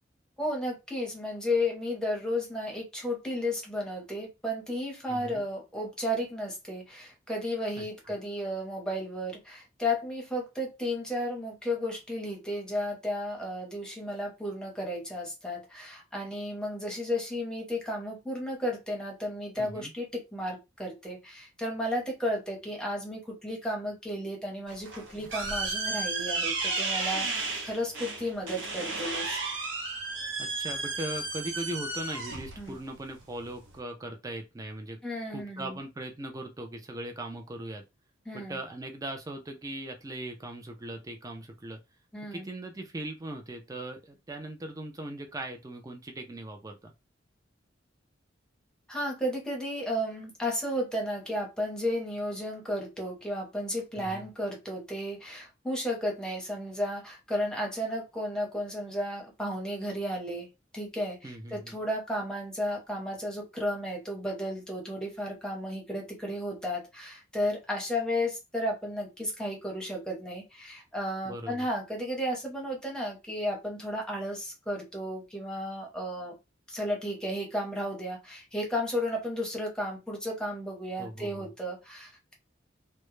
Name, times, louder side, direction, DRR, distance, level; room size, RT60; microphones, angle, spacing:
voice 1, 0.4-29.4 32.6-32.8 35.0-35.8 38.3-38.6 42.1-42.5 48.9-60.5 60.7-76.3 76.7-82.3, left 1 dB, 5° left, 0.8 m, -33 dB
voice 2, 5.1-5.4 7.8-7.9 19.6-19.9 30.4-35.0 35.3-37.8 38.3-41.8 42.3-46.9 54.0-54.3 61.2-61.8 71.2-71.7 81.0-81.5, right 1 dB, 20° right, 0.4 m, -39 dB
sound 1, 24.7-33.8, right 3 dB, 75° right, 0.8 m, -33 dB
2.2 x 2.1 x 3.0 m
head